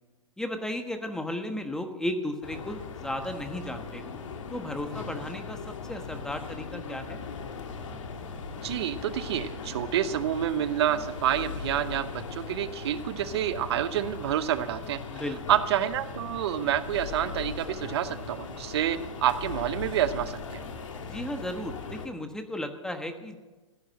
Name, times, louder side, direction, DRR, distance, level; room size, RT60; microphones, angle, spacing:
voice 1, 0.4-4.1 4.5-5.6 5.9-7.2 15.1-15.4 21.1-23.4, left 1 dB, 5° left, 7 dB, 1.2 m, -34 dB
sound 1, 2.4-22.1, left 5 dB, 70° left, 2.1 m, -39 dB
voice 2, 8.6-15.2 15.5-20.6, right 11 dB, 55° right, 13 dB, 0.9 m, -28 dB
15.0 x 10.0 x 7.7 m, 1.2 s
hypercardioid pair, 130°, 17 cm